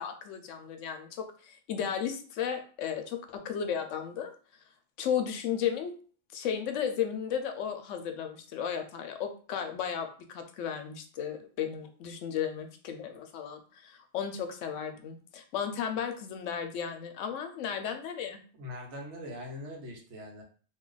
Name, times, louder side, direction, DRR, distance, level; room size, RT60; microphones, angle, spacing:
voice 1, 0.0-4.3 5.0-5.9 6.3-18.4, left 8 dB, 85° left, 6 dB, 0.9 m, -34 dB
voice 2, 18.6-20.4, left 1 dB, 70° right, 0 dB, 1.1 m, -42 dB
2.6 x 2.3 x 3.8 m, 0.41 s
omnidirectional pair, 1.2 m